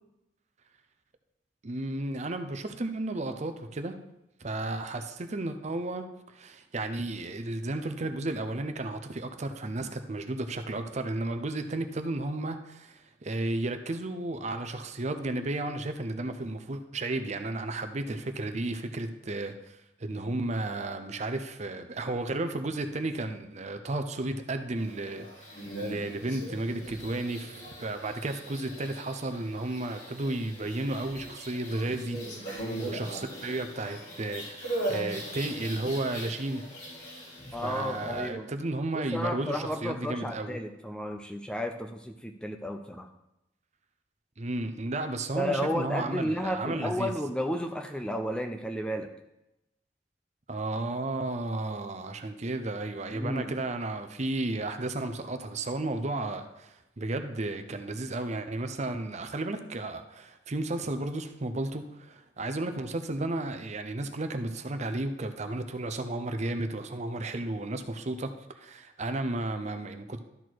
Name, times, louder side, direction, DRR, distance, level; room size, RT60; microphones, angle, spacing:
voice 1, 1.6-4.0 4.4-36.6 37.6-40.6 44.4-47.1 50.5-70.2, right 2 dB, 40° right, 8 dB, 0.7 m, -33 dB
sound 1, 24.8-38.3, right 1 dB, 70° left, 3.5 m, -40 dB
voice 2, 37.5-38.5 39.1-43.1 45.4-49.1 53.1-53.4, equal, 5° left, 5 dB, 0.5 m, -32 dB
12.0 x 4.3 x 4.6 m, 0.89 s
head